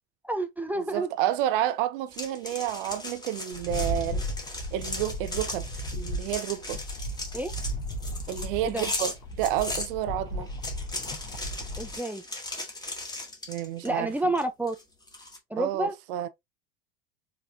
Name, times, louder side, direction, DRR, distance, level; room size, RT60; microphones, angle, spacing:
voice 1, 0.2-1.1 7.3-7.5 8.6-8.9 11.8-12.2 13.8-14.8 15.5-15.9, right 1 dB, 5° right, 0.5 m, -29 dB
voice 2, 0.7-4.2 4.7-5.7 5.9-6.8 8.3-10.5 13.5-14.1 15.6-16.3, right 12 dB, 60° right, 0.8 m, -30 dB
sound 1, 2.1-9.9 10.5-14.0 14.4-15.4, left 2 dB, 15° left, 1.7 m, -37 dB
Rattle, 3.5-12.0, equal, 70° left, 2.2 m, -35 dB
4.9 x 3.3 x 2.6 m
hypercardioid pair, 85°, 31 cm